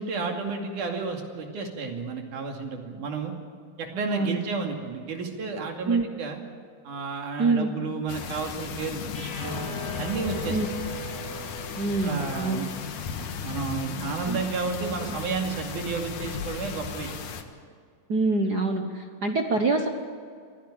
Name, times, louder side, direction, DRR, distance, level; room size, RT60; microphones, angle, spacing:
voice 1, 0.0-3.3 3.8-6.4 6.8-9.6 10.0-10.6 12.0-12.7 13.4-17.1, right 4 dB, 80° right, 2 dB, 4.0 m, -32 dB
voice 2, 7.4-7.7 10.5-10.6 11.8-12.6 14.2-14.4 15.1-15.2 18.1-19.9, right 3 dB, 55° right, 4 dB, 1.1 m, -25 dB
sound 1, 8.1-17.4, left 6 dB, 80° left, 3.0 m, -36 dB
sound 2, 9.1-15.4, right 1 dB, 25° left, 4.1 m, -41 dB
24.5 x 16.5 x 8.6 m, 2.2 s
omnidirectional pair, 3.6 m